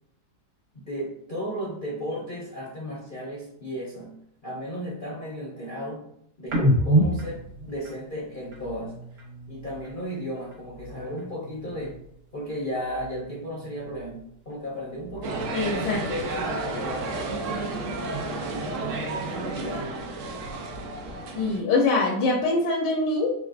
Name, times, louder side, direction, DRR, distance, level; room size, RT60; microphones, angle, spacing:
voice 1, 0.7-4.2 4.4-6.1 6.4-8.9 9.5-12.0 12.3-17.8 18.4-19.9, equal, 40° left, -6 dB, 0.8 m, -35 dB
sound 1, 6.5-10.0 10.4-12.2 12.5-14.3 14.7-16.5, right 1 dB, 55° right, 1.5 m, -30 dB
sound 2, 15.2-21.6, right 3 dB, 75° right, 0.7 m, -32 dB
voice 2, 15.5-16.0 21.3-23.4, left 3 dB, 75° left, -2 dB, 1.4 m, -23 dB
4.0 x 3.5 x 2.5 m, 0.73 s
omnidirectional pair, 2.0 m